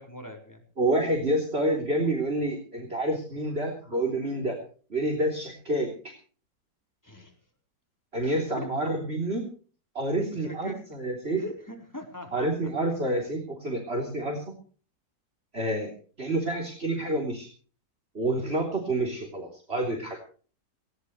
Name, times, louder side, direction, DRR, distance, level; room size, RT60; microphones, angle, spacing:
voice 1, 0.0-0.6 7.0-7.3 8.2-8.9 10.3-10.8 11.3-12.5, left 1 dB, 10° left, 2 dB, 4.4 m, -41 dB
voice 2, 0.8-4.6 4.9-6.1 8.1-9.5 10.0-11.4 12.3-14.4 15.5-15.9 16.2-17.5 18.1-20.2, right 1 dB, 35° right, 2 dB, 3.7 m, -28 dB
19.5 x 18.5 x 3.2 m, 0.41 s
omnidirectional pair, 1.9 m